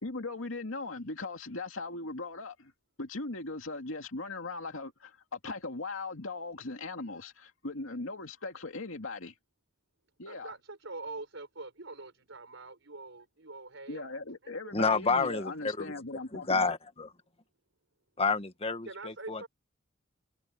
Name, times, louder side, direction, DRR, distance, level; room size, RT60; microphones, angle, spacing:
voice 1, 0.0-2.7 3.0-9.3 10.2-10.5 13.9-16.7, left 3 dB, 90° left, 2.4 m, -39 dB
voice 2, 10.3-14.1 14.4-14.6 18.8-19.5, right 3 dB, 70° right, 4.9 m, -44 dB
voice 3, 14.7-15.9 16.3-17.1 18.2-19.5, left 4 dB, 30° left, 1.6 m, -29 dB
head